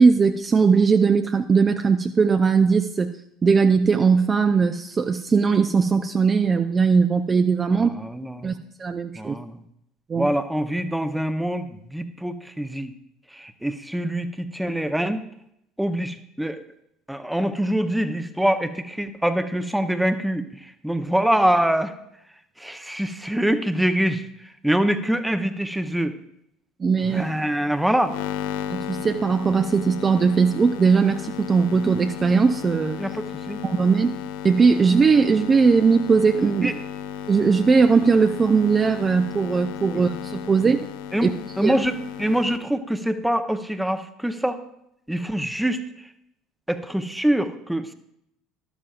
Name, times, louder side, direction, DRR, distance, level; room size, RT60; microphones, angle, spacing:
voice 1, 0.0-3.1 3.4-7.9 8.4-9.4 10.1-10.3 26.8-27.2 28.7-33.0 33.6-34.1 34.4-36.7 37.3-40.8 41.2-41.3 41.6-41.7, right 5 dB, 30° right, 8 dB, 0.4 m, -19 dB
voice 2, 7.7-8.5 9.2-9.6 10.1-12.9 13.3-15.2 15.8-16.6 17.1-21.9 22.6-24.2 24.6-26.2 27.0-28.2 33.0-33.6 36.6-36.8 39.9-40.0 41.1-41.3 41.6-44.6 45.1-45.8 46.7-47.9, right 1 dB, 5° right, 9 dB, 0.8 m, -24 dB
sound 1, 27.0-42.6, left 10 dB, 65° left, 0.6 m, -35 dB
12.0 x 12.0 x 2.4 m, 0.77 s
figure-of-eight pair, 65°, 0 cm